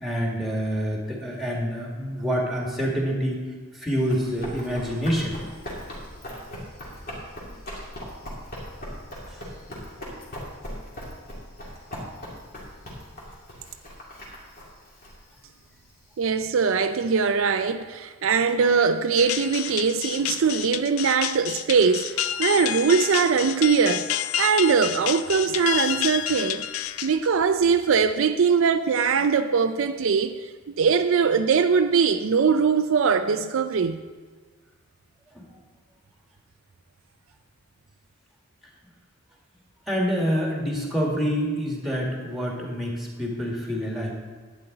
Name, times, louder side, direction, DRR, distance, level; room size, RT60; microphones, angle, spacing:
voice 1, 0.0-3.4 3.7-5.4 9.3-9.4 35.3-35.5 39.9-44.1, equal, ahead, 1.9 m, -27 dB
Run, 3.9-16.2, equal, 40° left, 2.5 m, -39 dB
voice 2, 16.2-26.7 27.0-34.0, right 5 dB, 65° right, 0.4 m, -22 dB
sound 1, 19.2-27.4, left 11 dB, 75° left, 0.4 m, -29 dB
11.5 x 9.2 x 3.9 m
head